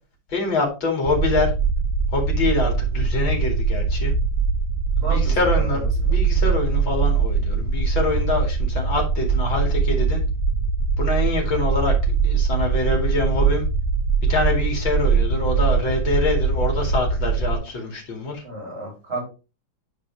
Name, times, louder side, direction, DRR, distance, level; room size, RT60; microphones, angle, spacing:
voice 1, 0.3-1.5 2.1-4.1 5.0-10.2 11.0-11.9 12.2-13.7 14.3-18.4, left 3 dB, 85° left, 3.2 m, -25 dB
sound 1, 1.0-17.6, right 5 dB, 15° left, 2.7 m, -22 dB
voice 2, 5.0-6.2 18.4-19.2, right 1 dB, 40° right, 4.2 m, -33 dB
10.5 x 4.3 x 3.4 m
omnidirectional pair, 2.1 m